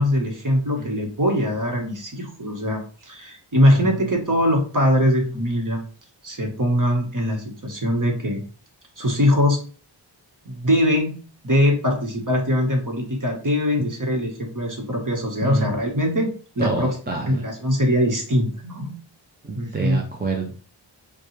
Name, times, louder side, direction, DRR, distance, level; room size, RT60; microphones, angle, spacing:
voice 1, 0.0-5.8 6.2-8.4 9.0-9.6 10.4-11.2 11.4-18.9 19.5-20.0, equal, 40° right, 1 dB, 1.3 m, -22 dB
voice 2, 16.6-17.4 19.4-20.5, right 3 dB, 20° right, 0 dB, 0.6 m, -27 dB
5.5 x 2.3 x 3.2 m, 0.40 s
wide cardioid pair, 90°, 48 cm